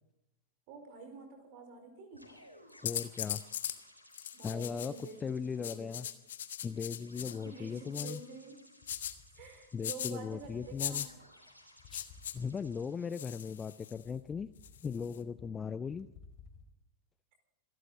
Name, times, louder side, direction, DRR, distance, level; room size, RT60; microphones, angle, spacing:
voice 1, 0.7-2.2 4.3-5.2 5.6-5.9 7.4-8.6 9.3-11.0, right 4 dB, 45° right, 6 dB, 5.0 m, -48 dB
sound 1, 2.1-14.1, left 1 dB, 90° left, 3.8 m, -61 dB
voice 2, 2.8-3.4 4.4-6.1 6.6-8.2 9.7-11.1 11.9-14.5 14.8-16.1, left 6 dB, 20° left, 15 dB, 0.5 m, -38 dB
sound 2, 2.9-3.8 4.1-5.1 5.6-7.4 7.9-8.2 8.9-9.1 9.8-10.1 10.8-11.1 11.9-12.3 13.1-14.0 14.6-15.2, left 10 dB, 60° left, 1.3 m, -39 dB
sound 3, 8.8-10.0 10.3-13.0 13.5-16.7, left 4 dB, 40° left, 3.2 m, -57 dB
27.0 x 12.5 x 4.0 m, 0.89 s
figure-of-eight pair, 90°, 0 cm